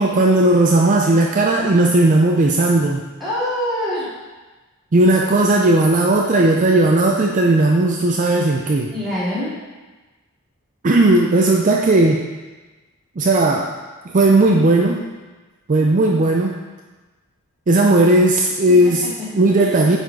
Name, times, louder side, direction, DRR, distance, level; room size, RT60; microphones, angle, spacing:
voice 1, 0.0-3.0 4.9-8.9 10.8-12.3 13.2-13.7 14.1-15.0 15.7-16.6 17.7-19.1 19.3-20.0, right 2 dB, 35° right, 1 dB, 0.5 m, -15 dB
voice 2, 3.2-4.1 8.9-9.5 18.7-19.8, left 1 dB, ahead, -10 dB, 2.5 m, -26 dB
8.6 x 4.1 x 4.7 m, 1.2 s
head